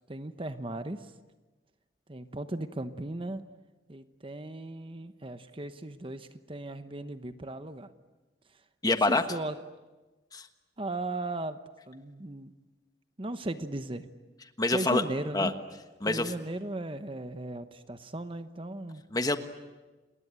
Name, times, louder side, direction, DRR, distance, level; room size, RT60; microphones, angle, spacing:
voice 1, 0.1-1.1 2.1-3.4 3.9-7.9 9.1-9.6 10.8-11.6 11.9-12.5 13.2-14.1 14.7-15.5 16.1-19.0, right 2 dB, 30° right, 10 dB, 1.0 m, -37 dB
voice 2, 8.8-9.2 10.3-10.5 14.6-15.0 15.3-15.5 16.0-16.3 19.1-19.4, left 2 dB, 20° left, 8 dB, 1.4 m, -26 dB
29.0 x 21.0 x 8.8 m, 1.2 s
head